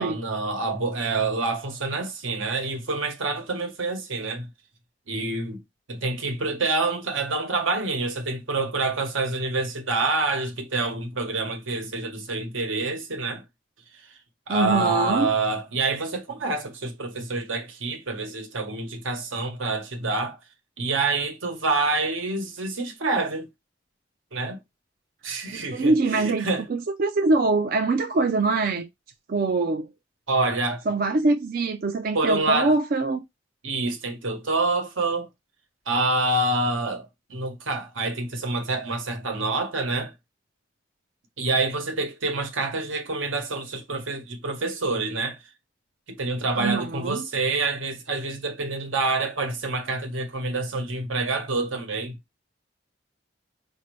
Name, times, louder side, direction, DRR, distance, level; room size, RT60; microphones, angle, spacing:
voice 1, 0.0-4.5 5.1-5.6 5.9-13.4 14.5-20.4 20.8-23.5 24.3-24.6 25.2-26.6 30.3-30.8 32.1-32.7 33.6-35.3 35.9-40.1 41.4-45.4 46.1-52.2, right 3 dB, 85° right, 1.1 m, -27 dB
voice 2, 14.5-15.3 25.5-28.9 29.3-29.9 30.9-33.2 46.5-47.3, right 3 dB, 45° right, 0.4 m, -23 dB
5.1 x 2.7 x 3.1 m
head